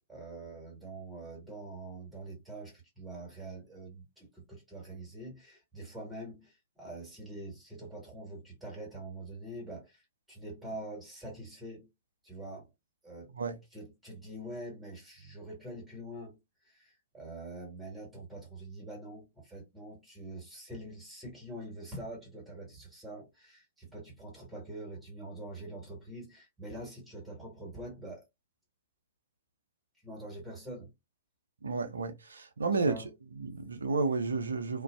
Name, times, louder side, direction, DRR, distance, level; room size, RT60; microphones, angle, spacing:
voice 1, 0.1-11.9 12.2-12.7 13.0-13.3 13.7-28.2 30.0-30.9 32.7-33.1, right 1 dB, 10° right, 1.4 m, -45 dB
voice 2, 31.6-32.9 33.4-34.8, right 4 dB, 75° right, 0.5 m, -31 dB
2.4 x 2.2 x 2.3 m
figure-of-eight pair, 105°, 0 cm